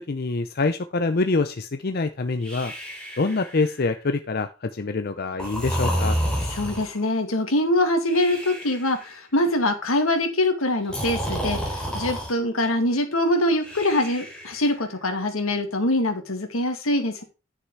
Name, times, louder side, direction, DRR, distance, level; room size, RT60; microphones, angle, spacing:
voice 1, 0.0-2.7 3.2-6.2, left 3 dB, 45° left, 9 dB, 0.6 m, -25 dB
Breathing, 2.4-4.0 5.4-7.0 8.1-9.1 10.8-12.3 13.6-14.8, equal, 5° left, 3.6 m, -30 dB
voice 2, 6.5-17.2, left 1 dB, 85° left, 6 dB, 2.1 m, -24 dB
9.9 x 6.6 x 4.6 m, 0.30 s
head